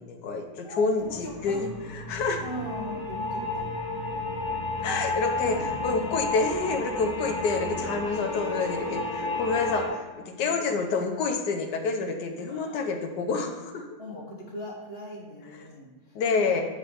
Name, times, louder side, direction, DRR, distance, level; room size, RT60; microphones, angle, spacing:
voice 1, 0.0-2.4 4.8-5.6 5.8-10.1 10.4-13.9 16.1-16.6, left 4 dB, 75° left, 4 dB, 1.4 m, -28 dB
voice 2, 0.5-1.7 2.4-3.7 4.7-4.9 5.4-5.8 8.1-8.2 9.2-9.4 10.4-10.9 12.5-12.9 14.0-16.6, left 1 dB, 35° left, -2 dB, 1.6 m, -40 dB
sound 1, 1.0-9.9, left 2 dB, 60° left, 1.9 m, -32 dB
7.6 x 4.8 x 5.1 m, 1.3 s
omnidirectional pair, 1.9 m